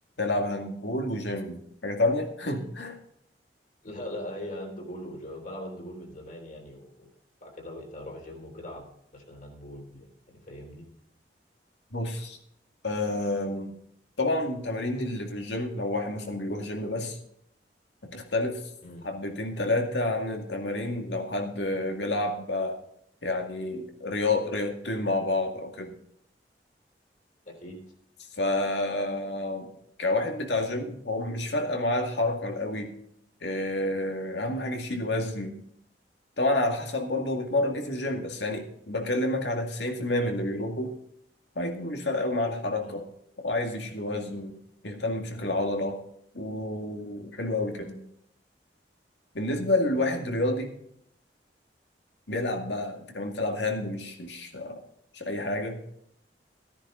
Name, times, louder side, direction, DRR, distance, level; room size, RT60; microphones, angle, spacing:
voice 1, 0.2-3.0 11.9-12.4 12.8-13.8 14.2-17.2 18.0-18.6 19.0-22.8 23.2-25.9 28.4-29.7 30.0-32.9 33.4-35.6 36.4-40.9 41.6-43.1 43.4-44.5 44.8-46.0 46.3-47.9 49.3-50.7 52.3-54.8 55.1-55.8, left 2 dB, 85° left, 3 dB, 2.2 m, -29 dB
voice 2, 3.8-7.1 7.4-8.9 9.1-10.9 18.8-19.0 27.4-27.8 42.8-43.0 47.7-48.0 49.8-50.0, left 1 dB, 50° left, 2 dB, 3.2 m, -41 dB
14.5 x 9.9 x 3.8 m, 0.71 s
head